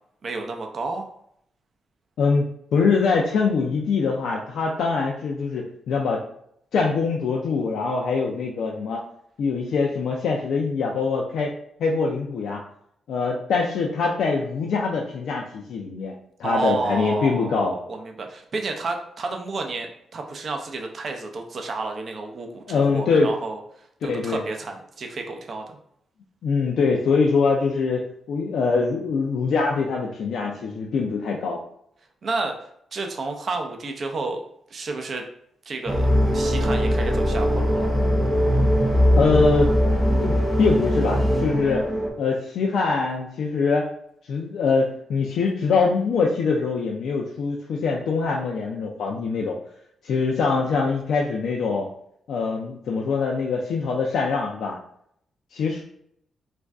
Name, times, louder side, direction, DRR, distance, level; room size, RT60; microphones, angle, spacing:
voice 1, 0.2-1.1 16.4-23.6 24.0-25.8 32.2-32.6 32.9-34.4 34.7-35.2 35.7-36.1 36.3-37.9, right 3 dB, 55° right, 3 dB, 0.4 m, -30 dB
voice 2, 2.2-6.2 6.7-9.0 9.4-11.5 11.8-12.6 13.1-16.1 16.4-17.8 22.5-23.3 24.1-24.4 26.4-31.6 39.2-39.7 40.2-41.8 42.2-43.9 44.3-49.6 50.0-51.9 52.3-54.8 55.5-55.8, left 4 dB, 75° left, -1 dB, 0.3 m, -23 dB
sound 1, 35.9-42.1, equal, 5° left, 0.6 m, -21 dB
2.4 x 2.2 x 3.4 m, 0.70 s
supercardioid pair, 55°, 0 cm